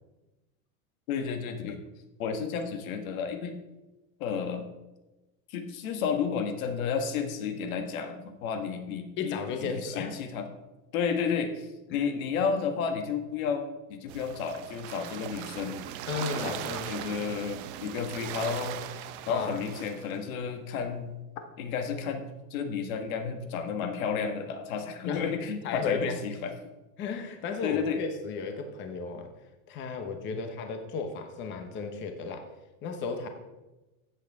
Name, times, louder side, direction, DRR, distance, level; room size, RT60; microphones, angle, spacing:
voice 1, 1.1-1.8 2.2-3.6 4.2-4.7 5.5-10.4 10.9-15.8 16.4-16.6 16.9-18.8 19.3-21.1 21.6-26.5 27.6-28.0 30.3-30.4, left 6 dB, 90° left, 6 dB, 1.7 m, -32 dB
voice 2, 9.2-10.2 11.9-12.1 16.1-16.9 19.3-19.6 25.1-25.3 25.6-26.2 27.0-29.3 29.7-32.4 32.8-33.3, left 5 dB, 30° left, 5 dB, 1.0 m, -34 dB
sound 1, 14.1-20.2, right 11 dB, 55° right, 0.8 m, -39 dB
14.5 x 8.2 x 3.6 m, 1.1 s
supercardioid pair, 170°, 40 cm